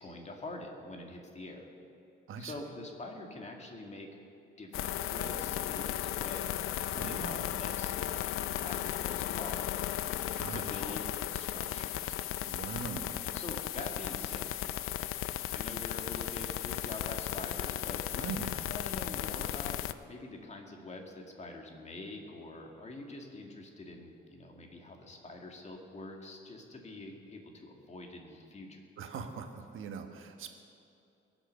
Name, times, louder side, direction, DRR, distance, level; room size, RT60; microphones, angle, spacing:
voice 1, 0.0-1.7 2.4-4.2 4.6-8.2 8.6-9.7 10.5-12.2 13.3-14.5 15.5-28.8, left 2 dB, 30° left, 2 dB, 2.2 m, -45 dB
sound 1, 4.7-19.9, left 12 dB, 80° left, 0.5 m, -35 dB
voice 2, 6.9-7.6 10.3-10.7 12.5-13.3 18.2-18.7 29.0-30.6, right 6 dB, 70° right, 5 dB, 1.5 m, -42 dB
21.5 x 8.0 x 6.6 m, 2.7 s
cardioid pair, 115°, 21 cm